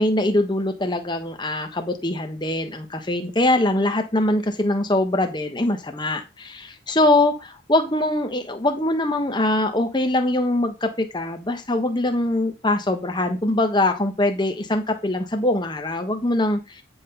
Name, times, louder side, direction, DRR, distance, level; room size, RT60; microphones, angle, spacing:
voice 1, 0.0-16.8, left 1 dB, 20° left, 6 dB, 1.2 m, -22 dB
9.9 x 3.8 x 5.6 m, 0.27 s
head